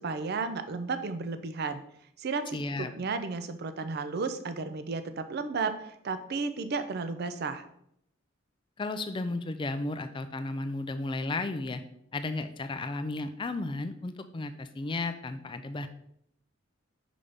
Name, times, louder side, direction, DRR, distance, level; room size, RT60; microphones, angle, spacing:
voice 1, 0.0-1.8 2.2-7.6, right 4 dB, 50° right, 10 dB, 0.5 m, -33 dB
voice 2, 2.5-2.9 8.8-11.8 12.1-15.9, left 2 dB, 25° left, 10 dB, 0.4 m, -34 dB
5.5 x 5.0 x 3.4 m, 0.74 s
head